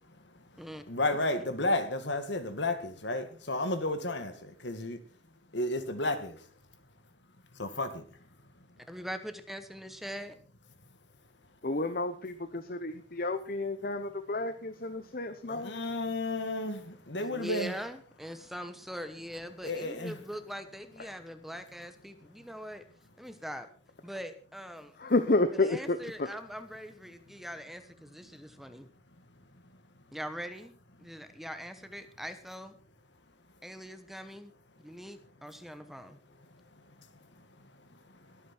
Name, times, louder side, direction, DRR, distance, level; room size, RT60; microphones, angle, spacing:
voice 1, 0.3-5.0 5.5-6.5 7.5-8.1 15.5-17.7 19.6-20.2 36.5-37.5 37.9-38.3, left 2 dB, 65° left, 2.1 m, -33 dB
voice 2, 8.9-10.4 15.5-15.6 17.2-22.8 23.2-23.7 24.0-24.9 25.5-28.9 30.1-30.7 31.0-32.7 33.6-34.5 34.8-36.2, equal, ahead, 1.1 m, -42 dB
voice 3, 11.6-15.7 21.0-21.2 25.0-26.3, left 2 dB, 50° left, 0.9 m, -30 dB
21.5 x 9.3 x 4.5 m
head